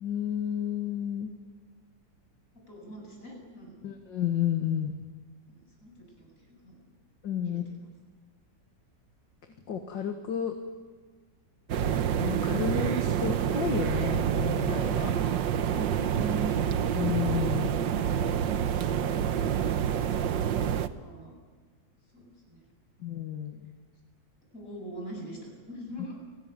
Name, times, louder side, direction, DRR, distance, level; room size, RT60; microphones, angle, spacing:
voice 1, 0.0-1.3 3.8-4.9 7.2-7.7 9.7-10.5 12.2-15.1 16.9-17.7 23.0-23.7, left 8 dB, 85° left, 4 dB, 2.4 m, -31 dB
voice 2, 2.7-3.8 5.5-6.8 7.4-7.8 14.9-15.4 15.7-16.6 21.0-21.4 22.1-22.6 24.5-26.1, right 1 dB, 45° left, 0 dB, 8.6 m, -42 dB
sound 1, 11.7-20.9, right 9 dB, 80° right, 1.7 m, -27 dB
30.0 x 20.0 x 9.2 m, 1.5 s
omnidirectional pair, 1.9 m